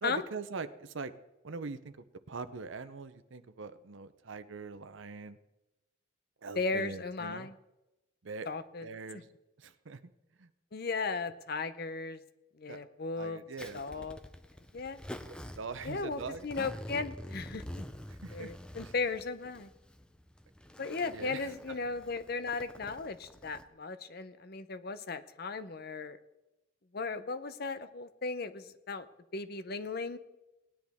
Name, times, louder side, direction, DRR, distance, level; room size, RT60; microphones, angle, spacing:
voice 1, 0.0-1.1 1.4-2.0 2.3-5.4 6.4-7.5 8.2-8.5 8.8-9.3 9.6-10.0 10.4-10.5 12.7-12.8 13.2-14.1 15.6-16.5 18.1-18.5 18.8-18.9 21.1-21.5, right 4 dB, 80° right, 13 dB, 0.7 m, -42 dB
voice 2, 6.6-7.5 8.4-8.9 9.1-9.2 10.7-12.2 12.6-13.4 13.7-14.2 14.7-15.0 15.8-17.9 18.3-19.7 20.8-26.2 26.9-29.1 29.3-30.2, left 4 dB, 55° left, 12 dB, 0.7 m, -36 dB
Zipper (clothing), 13.6-23.6, equal, 5° left, 0.5 m, -47 dB
18.5 x 10.5 x 3.6 m, 0.98 s
head